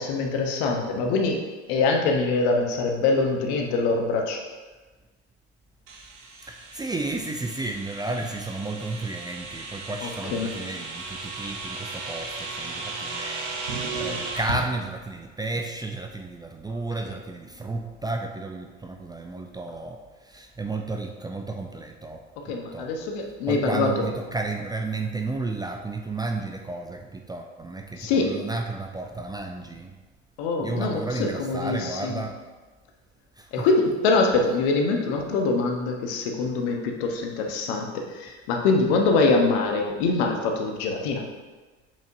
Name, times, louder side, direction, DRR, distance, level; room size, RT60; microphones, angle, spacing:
voice 1, 0.0-1.4 1.7-4.4 10.0-10.5 22.4-24.1 28.0-28.4 30.4-32.2 33.5-41.2, left 3 dB, 65° left, 2 dB, 1.1 m, -24 dB
sound 1, 5.9-14.6, right 3 dB, 85° right, 1.0 m, -35 dB
voice 2, 6.4-13.6 14.0-22.9 23.5-30.0 30.6-32.4 33.4-33.7, right 3 dB, 10° right, 3 dB, 0.5 m, -32 dB
7.3 x 5.2 x 2.7 m, 1.3 s
hypercardioid pair, 65°, 34 cm